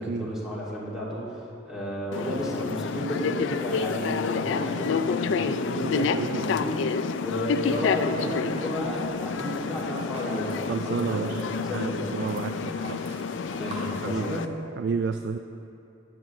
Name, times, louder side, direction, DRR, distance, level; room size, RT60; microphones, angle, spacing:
voice 1, 0.0-10.5 10.8-12.1 13.5-14.5, equal, 5° right, -8 dB, 2.4 m, -32 dB
sound 1, 2.1-14.5, left 5 dB, 65° left, 0.3 m, -29 dB
voice 2, 5.9-6.5 10.7-11.4 11.7-13.0 14.0-14.4 14.8-15.4, right 5 dB, 55° right, 7 dB, 0.3 m, -30 dB
sound 2, 8.1-14.0, right 1 dB, 35° right, 1.5 m, -44 dB
16.5 x 8.6 x 3.1 m, 2.8 s
head